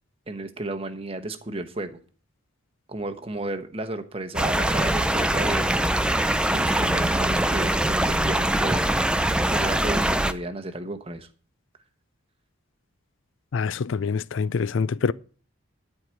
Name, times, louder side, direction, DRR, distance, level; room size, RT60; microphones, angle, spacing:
voice 1, 0.3-2.0 2.9-5.8 6.5-8.9 9.5-11.3, right 2 dB, 25° right, 1.0 m, -33 dB
sound 1, 4.4-10.3, right 1 dB, 5° right, 0.4 m, -23 dB
voice 2, 13.5-15.1, left 5 dB, 60° left, 0.4 m, -25 dB
12.0 x 4.7 x 8.2 m
head